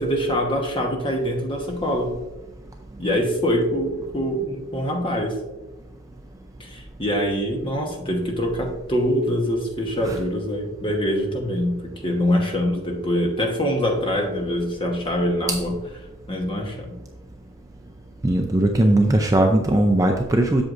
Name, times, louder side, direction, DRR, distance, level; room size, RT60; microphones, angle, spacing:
voice 1, 0.0-2.2 3.0-5.4 6.6-15.7 16.3-17.0, equal, 25° left, 1 dB, 1.1 m, -24 dB
voice 2, 18.2-20.6, right 1 dB, 15° right, 3 dB, 0.4 m, -19 dB
7.9 x 7.0 x 2.5 m, 1.1 s
head